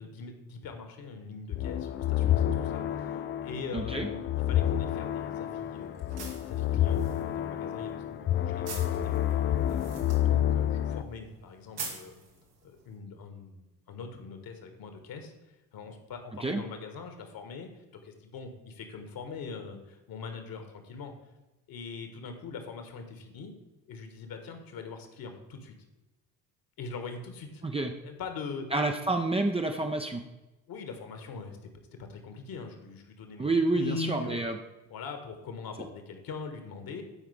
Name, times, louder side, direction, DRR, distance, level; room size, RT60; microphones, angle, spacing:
voice 1, 0.0-9.4 9.7-12.1 12.6-15.3 15.7-21.1 21.7-23.5 23.9-25.7 26.8-27.6 28.0-28.7 30.7-31.7 32.0-33.5 33.7-34.4 34.9-37.0, left 4 dB, 45° left, 6 dB, 1.7 m, -42 dB
sound 1, 1.5-11.0, left 11 dB, 25° left, 0.4 m, -29 dB
voice 2, 3.7-4.1 16.4-16.6 27.6-27.9 28.7-30.2 33.4-34.6, right 2 dB, 10° right, 3 dB, 0.7 m, -28 dB
sound 2, 4.4-12.9, right 4 dB, 75° right, 2.0 m, -47 dB
15.5 x 5.7 x 3.6 m, 1.1 s
figure-of-eight pair, 50°, 48 cm